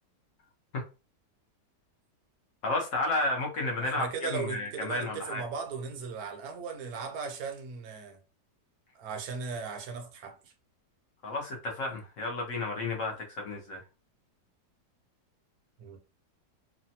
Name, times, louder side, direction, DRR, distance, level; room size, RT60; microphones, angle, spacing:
voice 1, 2.6-5.4 11.2-13.8, left 2 dB, 60° left, 0.9 m, -32 dB
voice 2, 3.8-8.2 8.9-10.5 15.8-16.0, right 5 dB, 65° right, 1.0 m, -37 dB
3.2 x 2.1 x 2.7 m
omnidirectional pair, 1.9 m